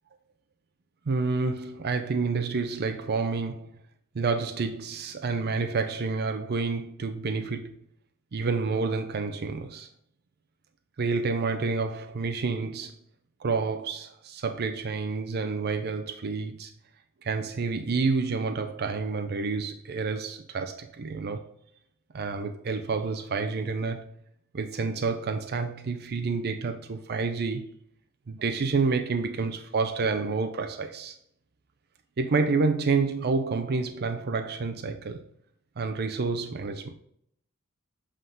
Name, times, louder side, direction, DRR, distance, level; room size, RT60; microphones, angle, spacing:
voice 1, 1.1-3.7 4.1-7.8 8.3-9.9 11.0-13.0 13.4-16.7 17.2-21.5 22.1-24.1 24.5-27.8 28.3-31.2 32.2-35.2 35.8-36.9, right 4 dB, 50° right, 0.5 m, -29 dB
7.7 x 3.7 x 3.8 m
head